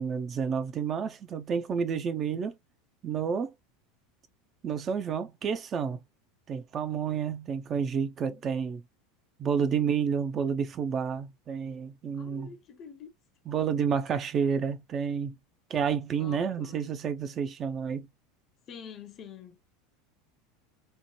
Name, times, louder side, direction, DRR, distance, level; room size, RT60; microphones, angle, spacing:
voice 1, 0.0-2.6 3.0-3.5 4.6-6.0 6.5-8.8 9.4-12.5 13.5-15.3 15.7-18.1, right 7 dB, 35° right, 0.4 m, -30 dB
voice 2, 9.4-9.9 12.2-13.1 16.2-16.9 18.7-19.6, left 7 dB, 35° left, 0.6 m, -47 dB
3.1 x 2.1 x 2.8 m
figure-of-eight pair, 80°, 0 cm